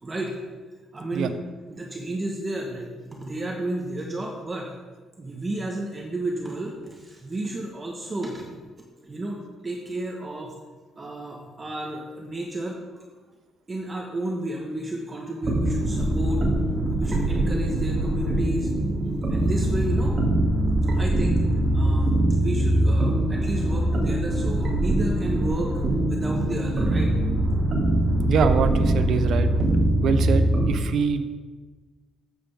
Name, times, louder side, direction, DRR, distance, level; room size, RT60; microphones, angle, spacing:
voice 1, 0.0-0.4 0.9-1.3 1.7-4.7 5.2-8.5 9.0-10.5 11.0-13.0 13.7-16.4 17.0-18.7 19.3-20.2 20.9-21.5 21.7-27.2, right 1 dB, 20° right, 0 dB, 1.3 m, -32 dB
sound 1, 15.4-30.7, right 1 dB, 40° right, 2.5 m, -23 dB
voice 2, 28.3-29.5 30.0-31.2, right 6 dB, 65° right, 9 dB, 0.9 m, -24 dB
14.0 x 7.7 x 3.6 m, 1.4 s
cardioid pair, 120°, 0 cm